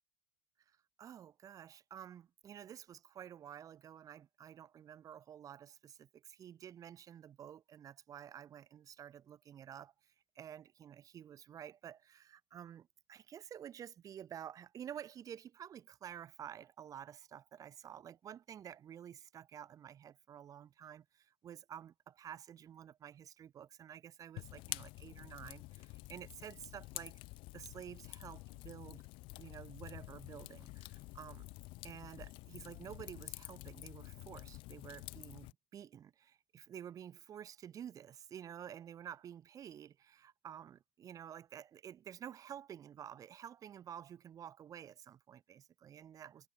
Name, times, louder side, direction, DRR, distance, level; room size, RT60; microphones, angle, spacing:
voice 1, 1.0-27.2 27.5-29.0 29.4-31.5 31.8-46.5, right 9 dB, 30° right, 1.0 m, -51 dB
Fire, 24.4-35.5, left 22 dB, 45° left, 0.4 m, -49 dB
hypercardioid pair, 110°, 12 cm